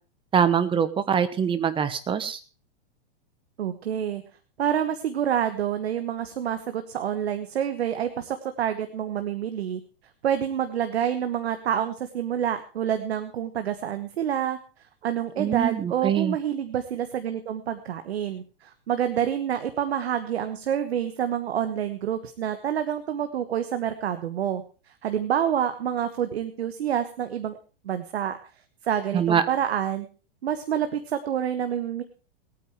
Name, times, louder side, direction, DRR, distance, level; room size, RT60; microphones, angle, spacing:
voice 1, 0.3-2.4 15.4-16.4 29.1-29.4, right 8 dB, 15° right, 12 dB, 1.2 m, -23 dB
voice 2, 3.6-4.2 4.6-9.8 10.2-14.6 15.0-24.6 25.0-27.6 27.8-28.4 28.8-30.1 30.4-32.0, right 9 dB, 80° right, 9 dB, 1.4 m, -27 dB
19.0 x 9.4 x 4.7 m, 0.36 s
hypercardioid pair, 135°, 31 cm